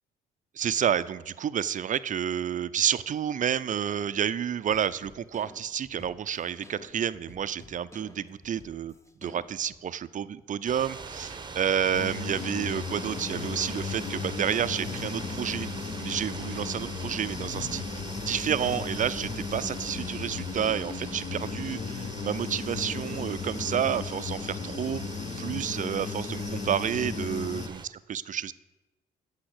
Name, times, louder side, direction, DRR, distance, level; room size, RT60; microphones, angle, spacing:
voice 1, 0.6-8.9 9.2-15.7 16.0-17.8 18.3-25.0 25.4-27.6 28.1-28.5, right 9 dB, 40° right, 15 dB, 0.5 m, -30 dB
sound 1, 4.7-9.8, left 2 dB, 15° left, 1.1 m, -52 dB
sound 2, 10.7-27.9, right 4 dB, 25° right, 0.9 m, -42 dB
Human voice / Buzz, 11.9-27.7, left 5 dB, 40° left, 0.9 m, -36 dB
8.6 x 5.7 x 7.9 m, 1.1 s
supercardioid pair, 60°, 20 cm